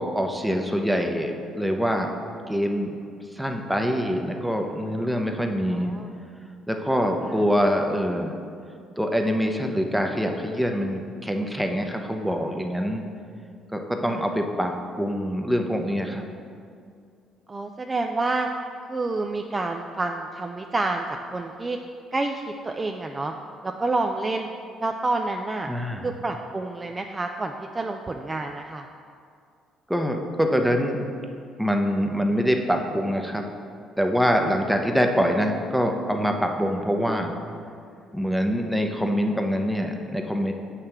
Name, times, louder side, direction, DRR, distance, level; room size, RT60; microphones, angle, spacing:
voice 1, 0.0-2.1 2.5-2.9 3.3-5.9 6.7-8.3 9.0-13.0 13.7-14.7 15.0-16.2 25.7-26.1 29.9-31.0 31.6-33.4 34.0-37.3 38.1-40.5, equal, 5° right, 3 dB, 0.7 m, -24 dB
voice 2, 5.7-6.1 14.0-14.2 17.5-18.5 18.9-21.0 21.3-21.8 22.1-23.3 23.6-24.5 24.8-25.7 26.0-28.8, right 2 dB, 25° right, 3 dB, 0.3 m, -28 dB
7.4 x 3.3 x 5.8 m, 2.3 s
supercardioid pair, 80°, 0 cm